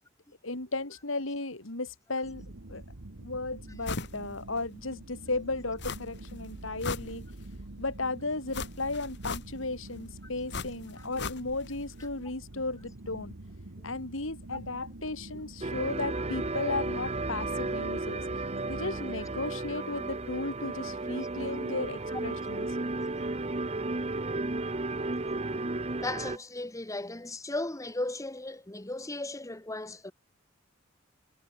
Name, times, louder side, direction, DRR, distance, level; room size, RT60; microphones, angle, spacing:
voice 1, 0.4-2.4 2.7-2.8 3.2-7.2 7.8-13.3 13.8-18.2 18.7-22.7, left 2 dB, 75° left, 3.8 m, -35 dB
sound 1, 2.2-19.3, right 1 dB, 85° right, 1.6 m, -46 dB
sound 2, 3.8-4.2 4.6-4.7 5.8-6.3 6.6-7.6 8.5-9.8 10.5-11.8 12.0-12.1, left 4 dB, 60° left, 2.1 m, -38 dB
sound 3, 15.6-26.4, right 2 dB, 30° right, 1.3 m, -33 dB
voice 2, 26.0-30.1, left 2 dB, 15° left, 1.5 m, -36 dB
head